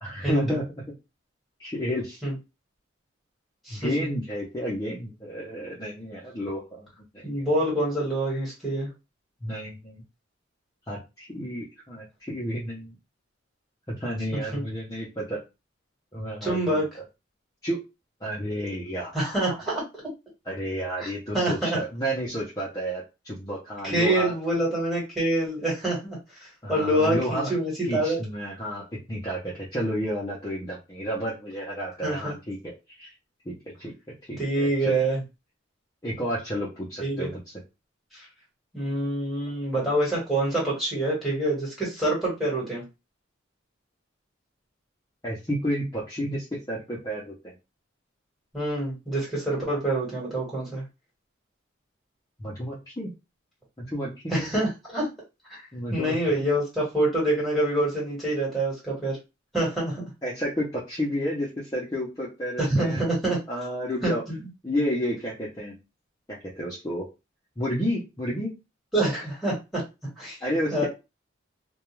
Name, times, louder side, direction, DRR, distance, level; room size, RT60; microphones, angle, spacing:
voice 1, 0.0-0.6 1.6-2.2 3.7-6.9 7.1-7.5 9.4-10.0 10.9-12.9 13.9-15.4 16.1-16.8 17.6-17.8 18.2-19.6 20.5-24.3 26.6-27.5 27.9-32.7 33.0-33.1 33.5-33.9 34.3-35.0 36.0-37.4 45.2-47.5 52.4-53.1 53.8-54.5 55.7-56.2 60.2-63.0 63.5-64.2 64.6-65.8 66.3-67.1 67.6-68.5 70.4-70.9, equal, 20° left, -6 dB, 0.6 m, -31 dB
voice 2, 3.7-4.1 7.2-8.9 14.3-14.6 16.4-16.9 19.1-19.8 21.0-21.1 21.3-21.8 23.8-26.2 26.7-28.2 32.0-32.4 34.4-35.2 37.0-37.3 38.7-42.8 48.5-50.8 54.3-55.1 55.5-55.6 55.9-59.2 59.5-60.1 62.6-63.4 64.0-64.2 68.9-69.8 70.2-70.4 70.7-70.9, right 1 dB, ahead, -6 dB, 1.3 m, -26 dB
2.3 x 2.3 x 3.0 m, 0.26 s
head